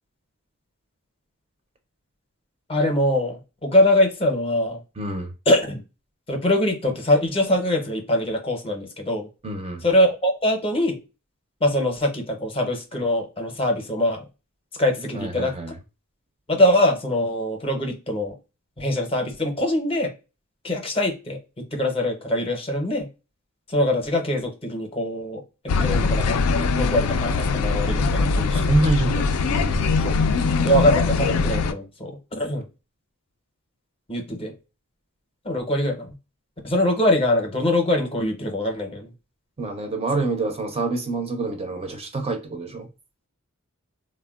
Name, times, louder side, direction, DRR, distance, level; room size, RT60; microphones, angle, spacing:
voice 1, 2.7-4.8 5.5-5.8 6.3-9.3 9.8-11.0 11.6-14.3 14.8-15.5 16.5-18.4 18.8-20.1 20.6-21.4 21.7-23.1 23.7-28.7 30.0-30.1 30.6-32.6 34.1-34.5 35.4-36.1 36.6-39.1, left 1 dB, 25° left, 0.6 m, -23 dB
voice 2, 5.0-5.3 9.4-9.8 15.1-15.7 28.5-30.0 39.6-42.9, right 3 dB, 25° right, 0.5 m, -27 dB
sound 1, 25.7-31.7, left 4 dB, 70° left, 0.3 m, -22 dB
3.3 x 2.1 x 2.2 m
head